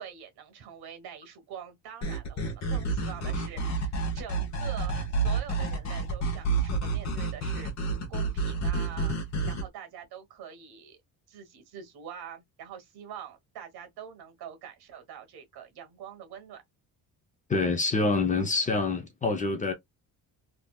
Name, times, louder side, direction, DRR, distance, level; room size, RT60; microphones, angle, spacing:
voice 1, 0.0-7.7 8.1-9.1 9.5-11.0 11.3-16.6, right 8 dB, 80° right, 1.4 m, -45 dB
sound 1, 2.0-9.6, right 3 dB, 45° left, 1.0 m, -29 dB
voice 2, 17.5-19.7, left 3 dB, 20° left, 0.5 m, -26 dB
3.4 x 2.7 x 2.3 m
cardioid pair, 175°, 38 cm